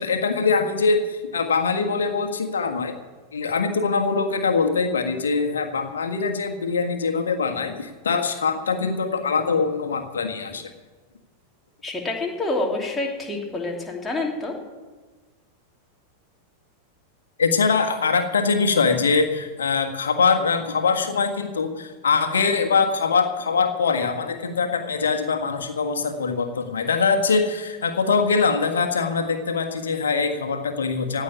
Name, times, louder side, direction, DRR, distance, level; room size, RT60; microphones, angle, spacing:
voice 1, 0.0-3.0 3.3-10.7 17.4-31.2, left 5 dB, 70° left, 5 dB, 1.6 m, -23 dB
voice 2, 11.8-14.5, left 2 dB, 10° left, -1 dB, 2.9 m, -27 dB
16.5 x 6.4 x 9.9 m, 1.3 s
figure-of-eight pair, 90°, 0 cm